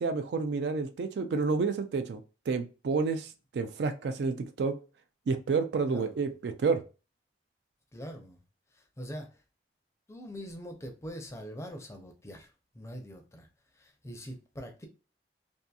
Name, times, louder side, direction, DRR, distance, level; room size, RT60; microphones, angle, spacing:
voice 1, 0.0-2.2 2.5-4.7 5.3-6.8, right 4 dB, 65° right, 0.3 m, -29 dB
voice 2, 5.9-6.2 7.9-8.4 8.7-9.3 10.1-13.5 13.8-14.9, equal, 15° left, 0.5 m, -43 dB
2.7 x 2.5 x 2.3 m
head